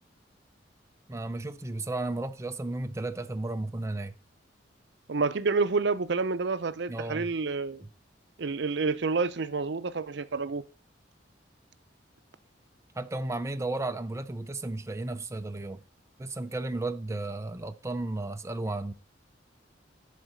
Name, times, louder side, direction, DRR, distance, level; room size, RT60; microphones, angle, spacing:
voice 1, 1.1-4.1 6.9-7.3 12.9-15.8 16.2-18.9, right 2 dB, 15° right, 0.5 m, -34 dB
voice 2, 5.1-7.8 8.4-10.6, right 4 dB, 70° right, 0.6 m, -29 dB
12.0 x 4.1 x 7.8 m
head